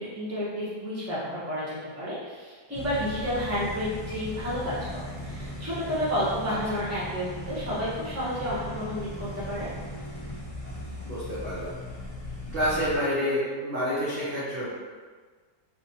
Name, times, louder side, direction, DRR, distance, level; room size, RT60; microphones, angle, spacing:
voice 1, 0.0-9.7, equal, 10° right, -10 dB, 0.8 m, -31 dB
sound 1, 2.7-13.0, left 1 dB, 50° left, 0.4 m, -38 dB
voice 2, 11.0-11.7 12.5-14.7, equal, 50° right, -10 dB, 0.7 m, -28 dB
3.3 x 2.8 x 2.8 m, 1.5 s
omnidirectional pair, 1.9 m